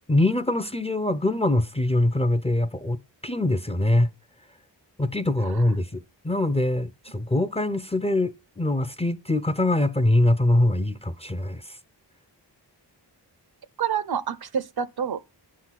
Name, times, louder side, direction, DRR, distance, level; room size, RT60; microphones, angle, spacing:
voice 1, 0.1-4.1 5.0-11.8, left 1 dB, 15° left, 0.5 m, -23 dB
voice 2, 13.8-15.2, right 8 dB, 60° right, 0.6 m, -28 dB
10.5 x 3.8 x 5.7 m
wide cardioid pair, 60°, 43 cm